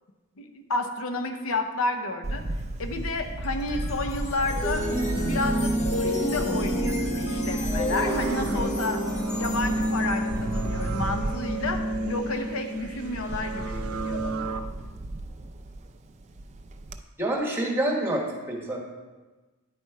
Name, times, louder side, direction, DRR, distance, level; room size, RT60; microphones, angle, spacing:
voice 1, 0.4-2.4 2.8-4.8 5.2-5.7 6.0-9.0 9.4-14.5, left 2 dB, 65° left, 6 dB, 0.7 m, -31 dB
Camera, 2.2-17.0, right 1 dB, 30° right, 0.4 m, -35 dB
sound 1, 3.4-12.7, equal, 30° left, 0.9 m, -31 dB
sound 2, 4.6-14.6, right 1 dB, 85° right, 0.6 m, -32 dB
voice 2, 17.2-18.8, right 1 dB, 10° right, -2 dB, 1.3 m, -27 dB
10.0 x 4.2 x 4.6 m, 1.2 s
head